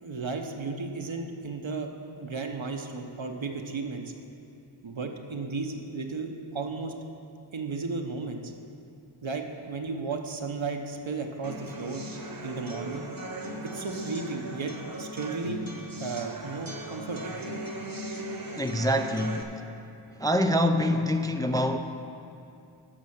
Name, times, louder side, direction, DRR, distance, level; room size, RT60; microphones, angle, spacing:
voice 1, 0.0-1.9 2.2-4.0 4.8-6.9 7.5-8.4 9.2-12.0 12.4-13.1 13.7-14.7 15.0-15.6 16.0-17.4, right 4 dB, 70° right, 4 dB, 0.9 m, -34 dB
sound 1, 11.4-19.4, right 1 dB, 45° right, 1.0 m, -38 dB
voice 2, 18.6-19.6 20.1-21.8, equal, 10° left, 6 dB, 0.3 m, -25 dB
10.0 x 6.2 x 6.4 m, 2.6 s
wide cardioid pair, 50°, 48 cm